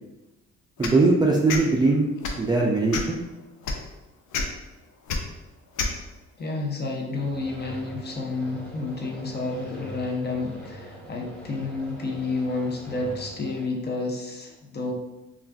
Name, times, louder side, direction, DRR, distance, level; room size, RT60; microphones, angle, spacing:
sound 1, 0.8-1.0 1.5-1.6 2.2-2.4 2.9-3.2 3.6-3.8 4.3-4.4 5.1-5.2 5.8-5.9, left 4 dB, 85° left, 0.5 m, -27 dB
voice 1, 0.8-2.1 2.4-3.2, right 3 dB, 15° right, -2 dB, 0.3 m, -20 dB
voice 2, 6.4-14.9, left 3 dB, 35° left, 1 dB, 0.6 m, -30 dB
sound 2, 7.1-13.7, right 1 dB, ahead, 1.2 m, -43 dB
2.4 x 2.3 x 3.3 m, 1.0 s
cardioid pair, 90°, 30 cm